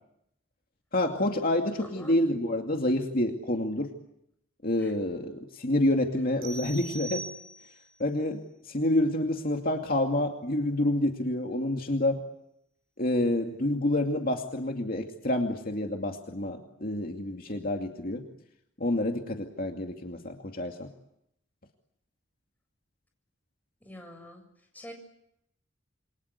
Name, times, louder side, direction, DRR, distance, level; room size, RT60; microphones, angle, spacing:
voice 1, 0.9-3.9 4.6-7.2 8.0-12.2 13.0-18.2 18.8-20.9, left 1 dB, 50° left, 3 dB, 2.5 m, -28 dB
voice 2, 1.8-2.3 4.8-4.9 23.8-24.4 24.7-24.9, equal, 10° left, 4 dB, 7.3 m, -46 dB
sound 1, 6.4-8.0, right 2 dB, 45° right, 6.0 m, -41 dB
28.0 x 25.5 x 8.2 m, 0.78 s
head